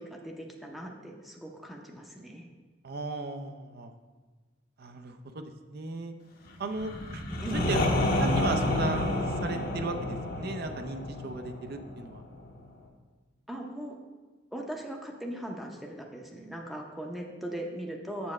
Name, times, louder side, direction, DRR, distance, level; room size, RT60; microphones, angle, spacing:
voice 1, 0.0-2.5 7.4-7.7 13.5-14.0 14.5-18.3, right 1 dB, ahead, 0 dB, 0.6 m, -39 dB
voice 2, 2.8-3.9 4.8-6.1 6.6-7.2 7.5-7.8 8.2-12.2, right 2 dB, 55° right, 6 dB, 0.6 m, -36 dB
sound 1, 6.7-12.5, left 1 dB, 55° left, 0.9 m, -29 dB
7.3 x 7.0 x 3.2 m, 1.3 s
head